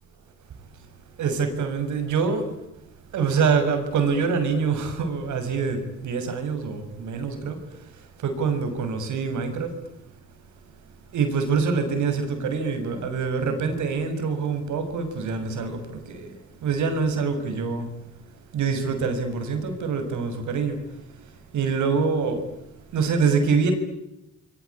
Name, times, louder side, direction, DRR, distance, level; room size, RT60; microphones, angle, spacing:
voice 1, 1.2-2.5 3.1-9.8 11.1-18.0 18.5-22.6 22.9-23.7, right 5 dB, 75° right, 6.7 m, -25 dB
29.0 x 23.0 x 8.6 m
cardioid pair, 90°, 30 cm